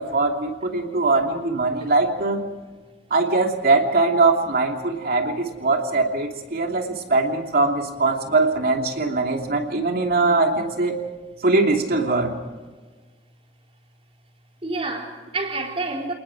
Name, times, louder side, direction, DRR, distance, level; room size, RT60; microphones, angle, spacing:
voice 1, 0.0-2.4 3.1-11.0 11.4-12.4, right 3 dB, 60° right, 3 dB, 2.9 m, -21 dB
voice 2, 8.9-10.1 10.3-10.4 12.6-12.7 14.6-16.1, right 2 dB, 35° right, 1 dB, 4.0 m, -32 dB
29.0 x 19.5 x 4.9 m, 1.3 s
head